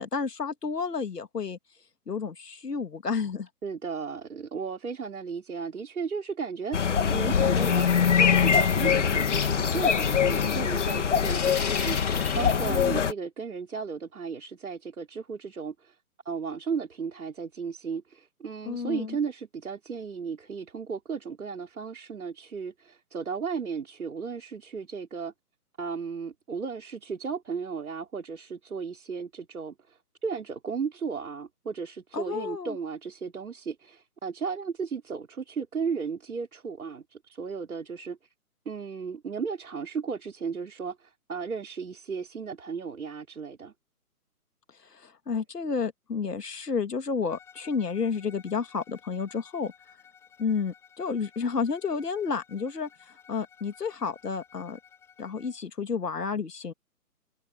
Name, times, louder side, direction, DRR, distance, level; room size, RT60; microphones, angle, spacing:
voice 1, 0.0-1.6 2.1-3.5 12.7-13.1 18.6-19.2 32.1-32.8 44.9-49.7 50.4-52.9 53.3-54.8 55.2-56.7, left 5 dB, 85° left, 2.7 m, -31 dB
voice 2, 3.6-16.0 16.3-25.3 25.8-38.2 38.7-43.7, right 5 dB, 65° right, 5.3 m, -35 dB
sound 1, 6.7-13.1, left 7 dB, 50° left, 2.5 m, -23 dB
sound 2, 7.5-12.9, left 6 dB, 65° left, 2.6 m, -39 dB
Bowed string instrument, 47.3-55.6, left 7 dB, 5° left, 4.1 m, -56 dB
hypercardioid pair, 170°, 46 cm